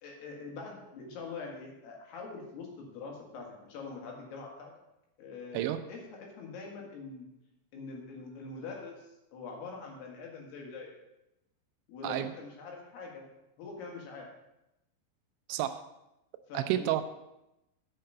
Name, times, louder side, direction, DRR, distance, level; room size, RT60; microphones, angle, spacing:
voice 1, 0.0-4.7 5.2-7.2 7.7-10.9 11.9-13.3 13.6-14.3 16.5-16.9, left 4 dB, 65° left, 0 dB, 3.5 m, -44 dB
voice 2, 15.5-15.8 16.5-17.0, right 13 dB, 85° right, 10 dB, 2.8 m, -30 dB
8.9 x 5.7 x 6.6 m, 0.89 s
omnidirectional pair, 5.3 m